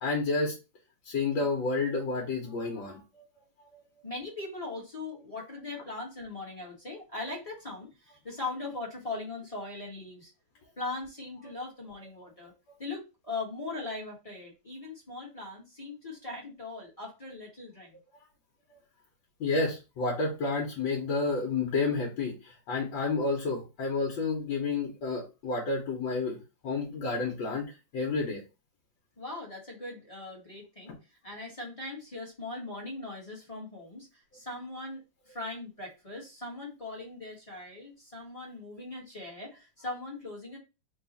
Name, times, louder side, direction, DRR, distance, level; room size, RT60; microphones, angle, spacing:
voice 1, 0.0-0.5 1.0-3.0 19.4-26.4 26.6-28.4, left 3 dB, 80° left, 0 dB, 1.6 m, -30 dB
voice 2, 4.0-10.3 10.8-12.5 12.8-18.0 29.2-40.6, left 2 dB, 20° left, -4 dB, 1.1 m, -40 dB
3.8 x 2.3 x 4.0 m, 0.29 s
omnidirectional pair, 2.1 m